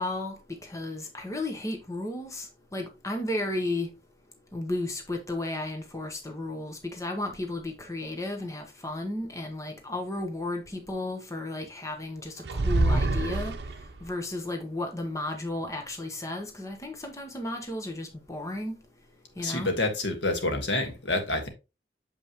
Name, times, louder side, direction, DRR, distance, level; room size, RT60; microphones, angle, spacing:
voice 1, 0.0-3.9 4.5-13.5 14.0-18.7 19.4-19.7, left 2 dB, 15° left, 1.0 m, -34 dB
sound 1, 12.5-14.1, right 2 dB, 70° right, 0.7 m, -26 dB
voice 2, 19.4-21.5, left 2 dB, 90° left, 1.6 m, -28 dB
7.0 x 5.3 x 3.0 m
head